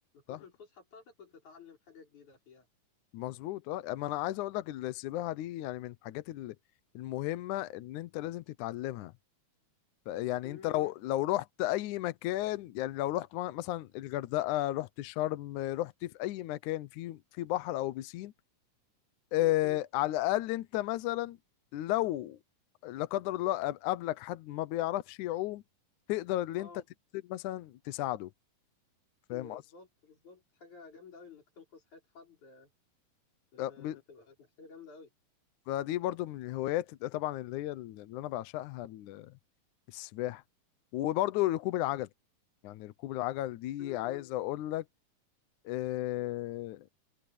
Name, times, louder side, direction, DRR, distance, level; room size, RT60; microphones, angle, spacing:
voice 1, 0.1-2.7 10.4-10.7 19.4-19.6 26.6-26.8 29.3-32.7 33.5-35.1 43.8-44.1, left 5 dB, 60° left, 6.7 m, -53 dB
voice 2, 3.1-6.6 7.0-9.1 10.1-18.3 19.3-21.4 21.7-22.4 22.8-25.6 26.1-26.7 27.3-28.3 29.3-29.6 33.6-34.0 35.7-39.3 39.9-40.4 40.9-42.1 42.6-44.8 45.7-46.9, left 15 dB, 75° left, 2.1 m, -33 dB
open air
omnidirectional pair, 3.9 m